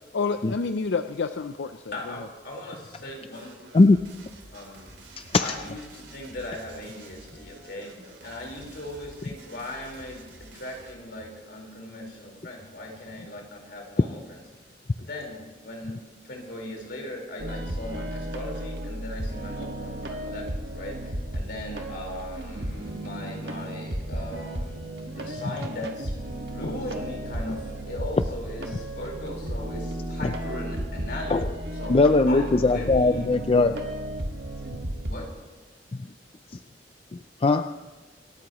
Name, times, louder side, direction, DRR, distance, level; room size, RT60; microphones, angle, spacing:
voice 1, 0.1-2.1, left 4 dB, 90° left, 8 dB, 0.5 m, -29 dB
voice 2, 1.9-3.6 4.5-4.9 5.4-14.4 15.0-16.0 16.2-26.1 26.5-32.0 32.2-33.3 35.1-35.3, left 1 dB, 65° left, -1 dB, 4.4 m, -38 dB
sound 1, 3.3-11.1, right 2 dB, 85° right, 2.9 m, -49 dB
voice 3, 5.2-5.5 30.2-30.3 31.3-31.5 31.9-33.7 35.9-36.1 37.1-37.8, left 3 dB, 35° left, 9 dB, 0.4 m, -20 dB
sound 2, 17.4-35.1, right 1 dB, 65° right, 1.6 m, -34 dB
27.0 x 13.5 x 3.0 m, 1.2 s
head